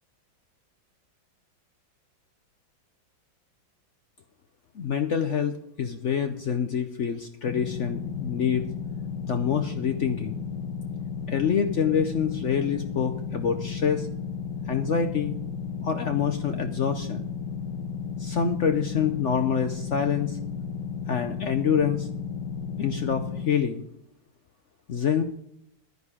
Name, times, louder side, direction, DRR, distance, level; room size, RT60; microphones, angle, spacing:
voice 1, 4.7-8.6 9.3-10.4 11.3-14.1 14.7-15.4 15.8-17.3 18.2-20.4 21.1-22.1 22.8-23.9 24.9-25.2, left 7 dB, 60° left, 7 dB, 0.7 m, -26 dB
sound 1, 7.5-23.5, left 6 dB, 80° left, 1.3 m, -34 dB
11.0 x 10.5 x 4.9 m, 0.76 s
omnidirectional pair, 2.0 m